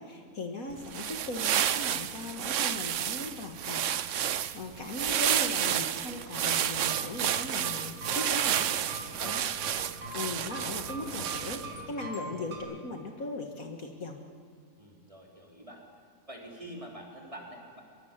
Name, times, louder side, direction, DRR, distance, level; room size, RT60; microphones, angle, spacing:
voice 1, 0.0-4.2 4.5-8.7 9.2-9.4 10.1-14.2, left 2 dB, 55° left, 3 dB, 2.1 m, -38 dB
sound 1, 0.8-11.8, right 10 dB, 60° right, 0.9 m, -30 dB
sound 2, 6.7-12.6, right 2 dB, 75° right, 5.4 m, -42 dB
voice 2, 9.0-9.6 14.8-15.8 16.3-17.8, equal, 20° right, -1 dB, 4.0 m, -46 dB
23.5 x 22.5 x 7.5 m, 2.3 s
omnidirectional pair, 1.8 m